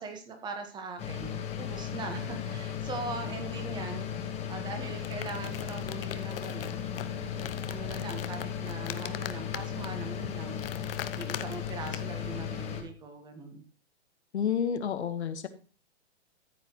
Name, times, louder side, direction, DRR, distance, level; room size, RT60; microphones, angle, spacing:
voice 1, 0.0-10.6 11.2-13.6, right 3 dB, 15° right, 6 dB, 1.4 m, -41 dB
sound 1, 1.0-12.8, left 8 dB, 20° left, 1.5 m, -36 dB
sound 2, 4.8-12.3, left 11 dB, 55° left, 0.8 m, -42 dB
voice 2, 14.3-15.5, left 8 dB, 70° left, 8 dB, 1.5 m, -30 dB
13.5 x 7.5 x 3.1 m, 0.36 s
hypercardioid pair, 145°, 34 cm